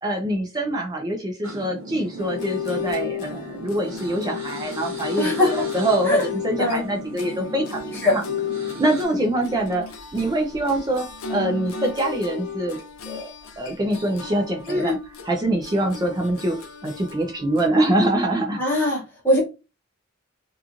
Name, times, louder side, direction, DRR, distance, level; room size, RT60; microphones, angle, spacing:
voice 1, 0.0-8.2 8.8-9.8 10.1-12.8 13.1-15.0 15.2-16.6 16.8-18.6, right 1 dB, 20° right, 0.4 m, -24 dB
sound 1, 1.4-9.1, equal, 70° right, 0.9 m, -37 dB
sound 2, 2.2-17.7, left 7 dB, 80° left, 0.5 m, -34 dB
voice 2, 5.2-5.5 6.1-6.2 6.6-6.9 8.0-8.2 14.7-15.0 18.6-19.4, left 1 dB, 10° left, 0.7 m, -21 dB
2.9 x 2.3 x 2.4 m
head